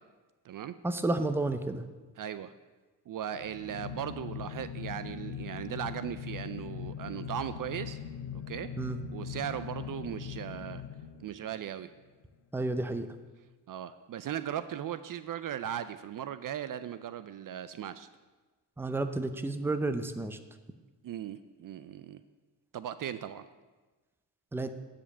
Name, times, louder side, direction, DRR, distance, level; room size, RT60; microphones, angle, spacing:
voice 1, 0.8-1.8 8.8-9.0 12.5-13.1 18.8-20.4 24.5-24.7, right 2 dB, 5° right, 9 dB, 0.6 m, -31 dB
voice 2, 2.2-2.5 3.1-8.0 8.5-8.7 9.1-10.8 11.2-11.9 13.7-18.1 21.0-22.2 22.7-23.5, right 10 dB, 50° right, 13 dB, 0.5 m, -38 dB
sound 1, 3.3-11.7, left 8 dB, 85° left, 0.8 m, -41 dB
9.7 x 5.2 x 6.6 m, 1.2 s
cardioid pair, 80°, 42 cm